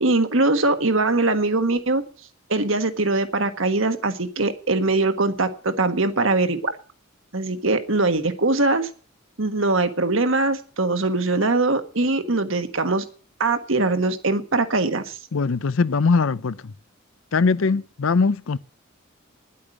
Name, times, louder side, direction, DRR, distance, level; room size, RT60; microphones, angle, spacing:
voice 1, 0.0-2.0 2.5-6.7 7.3-8.9 9.4-13.0 13.4-15.2, right 2 dB, 65° right, 1.5 m, -22 dB
voice 2, 15.3-16.7 17.3-18.6, left 4 dB, 70° left, 0.5 m, -21 dB
10.5 x 8.5 x 9.8 m
head